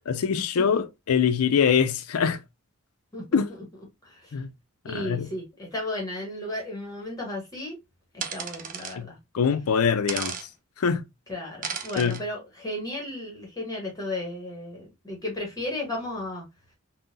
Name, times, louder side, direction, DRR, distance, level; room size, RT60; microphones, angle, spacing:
voice 1, 0.1-2.4 3.3-3.5 4.3-4.5 4.8-5.3 9.0-9.1 9.3-10.4 10.8-11.0 12.0-12.2, left 6 dB, 80° left, 0.4 m, -23 dB
voice 2, 4.0-4.3 4.8-7.8 8.1-9.2 11.3-16.4, left 1 dB, 15° left, 1.0 m, -34 dB
sound 1, 8.2-9.0 10.1-10.5 11.6-12.2, right 7 dB, 35° right, 0.4 m, -34 dB
3.7 x 2.1 x 2.6 m
head